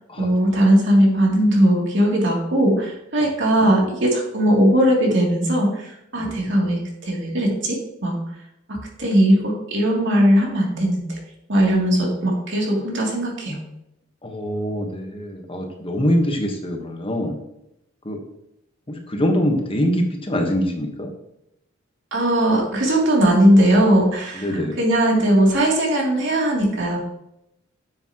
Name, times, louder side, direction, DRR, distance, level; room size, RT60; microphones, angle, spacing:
voice 1, 0.2-8.2 8.7-11.2 11.5-13.6 22.1-27.0, right 1 dB, 65° right, -2 dB, 2.8 m, -19 dB
voice 2, 6.2-6.5 14.2-17.4 18.0-18.2 18.9-21.1 24.3-24.8, equal, 30° left, 3 dB, 1.2 m, -24 dB
9.5 x 7.1 x 2.9 m, 0.81 s
head